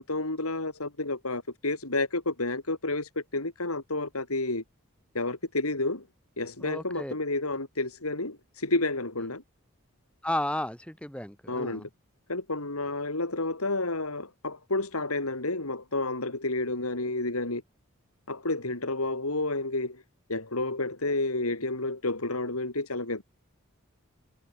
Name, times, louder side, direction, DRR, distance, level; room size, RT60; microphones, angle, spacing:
voice 1, 0.0-4.6 5.1-6.0 6.4-9.4 11.5-11.9 12.3-17.6 18.3-20.0 20.3-23.2, left 2 dB, 90° left, 4.6 m, -30 dB
voice 2, 6.6-7.1 10.2-11.9, left 1 dB, 5° left, 3.9 m, -33 dB
head